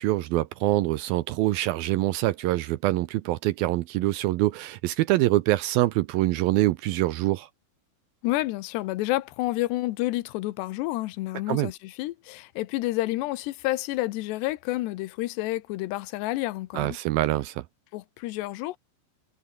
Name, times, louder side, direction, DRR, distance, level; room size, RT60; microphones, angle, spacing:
voice 1, 0.0-7.5 11.5-11.7 16.7-17.6, right 17 dB, 80° right, 2.2 m, -25 dB
voice 2, 8.2-17.0 17.9-18.8, left 17 dB, 85° left, 3.1 m, -29 dB
omnidirectional pair, 4.9 m